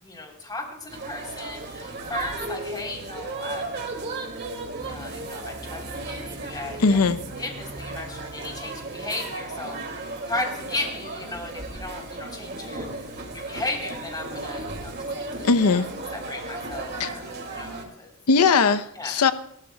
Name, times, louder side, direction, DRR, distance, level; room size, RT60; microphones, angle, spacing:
voice 1, 0.0-4.1 4.9-7.0 7.4-15.8 16.1-18.1 19.0-19.2, left 2 dB, 20° left, 3.6 m, -36 dB
sound 1, 0.9-17.8, right 2 dB, 50° right, 2.3 m, -35 dB
sound 2, 4.8-10.1, right 1 dB, ahead, 0.6 m, -44 dB
voice 2, 6.8-7.2 15.4-15.9 17.0-17.1 18.3-19.3, left 4 dB, 85° left, 0.7 m, -19 dB
30.0 x 13.5 x 2.3 m
head